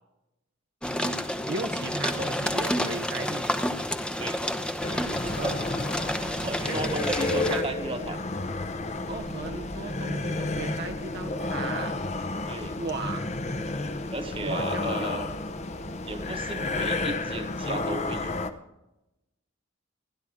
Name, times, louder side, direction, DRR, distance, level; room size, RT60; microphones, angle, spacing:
sound 1, 0.8-7.6, equal, 5° left, 0.8 m, -30 dB
voice 1, 1.5-3.4 5.3-5.7 6.7-7.6 9.1-12.0 12.8-13.3 14.4-15.2, right 3 dB, 50° right, 4 dB, 0.8 m, -36 dB
voice 2, 4.2-4.5 6.4-8.2 12.5-12.8 14.1-15.3 16.1-18.3, right 2 dB, 25° right, 6 dB, 1.3 m, -35 dB
sound 2, 4.8-18.5, left 2 dB, 35° left, 0.9 m, -31 dB
28.5 x 11.5 x 3.7 m, 0.95 s
head